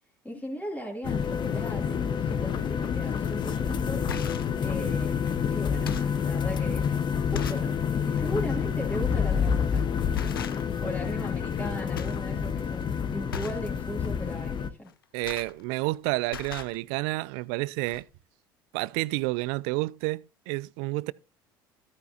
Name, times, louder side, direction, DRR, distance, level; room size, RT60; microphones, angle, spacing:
voice 1, 0.2-4.0 4.6-6.8 7.3-7.7 8.1-10.0 10.8-14.9, equal, 10° left, 2.9 m, -37 dB
sound 1, 1.0-14.7, left 7 dB, 40° left, 1.1 m, -28 dB
sound 2, 3.2-3.3 3.9-4.6 5.2-5.4 5.7-6.2 6.8-6.9 7.3-7.7 8.1-8.3 9.5-9.7 10.1-10.9 11.2-11.7 11.9-12.3 12.6-12.8 13.3-13.7 14.9-16.0 16.2-16.8 17.5-17.6 17.9-18.0, left 8 dB, 90° left, 0.7 m, -38 dB
voice 2, 15.1-18.1 18.7-21.1, right 23 dB, 65° right, 0.4 m, -30 dB
13.5 x 9.5 x 2.8 m
hypercardioid pair, 70°, 11 cm